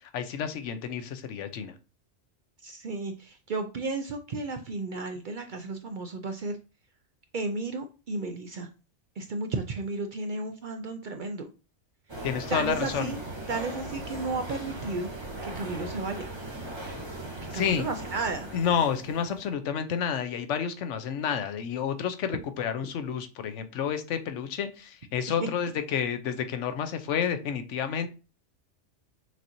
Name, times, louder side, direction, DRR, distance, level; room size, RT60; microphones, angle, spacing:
voice 1, 0.1-1.7 12.2-13.1 17.5-17.9 18.5-28.1, left 8 dB, 80° left, 9 dB, 1.0 m, -30 dB
voice 2, 2.6-6.6 7.3-8.7 9.2-11.5 12.2-13.2 13.5-15.1 15.4-16.3 17.5-18.5, right 3 dB, 55° right, 6 dB, 0.6 m, -33 dB
sound 1, 12.1-19.5, right 2 dB, 25° right, 0.9 m, -38 dB
6.2 x 2.9 x 2.6 m, 0.32 s
omnidirectional pair, 1.2 m